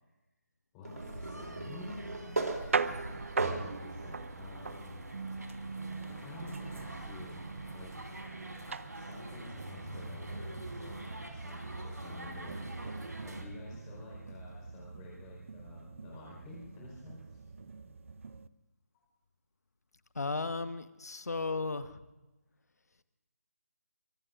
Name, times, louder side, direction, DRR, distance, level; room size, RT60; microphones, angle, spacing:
voice 1, 0.7-2.5 2.8-5.1 6.1-7.4 7.7-8.0 8.9-17.4, left 2 dB, 15° left, -4 dB, 4.5 m, -50 dB
sound 1, 0.8-3.9 4.5-4.6 6.0-6.1, right 2 dB, 70° right, 3.3 m, -37 dB
sound 2, 1.0-13.4, right 1 dB, 90° right, 3.9 m, -46 dB
sound 3, 2.3-18.5, right 5 dB, 50° right, 0.7 m, -41 dB
voice 2, 20.1-22.0, left 3 dB, 70° left, 11 dB, 1.3 m, -35 dB
25.0 x 20.0 x 2.6 m, 1.0 s
figure-of-eight pair, 155°, 9 cm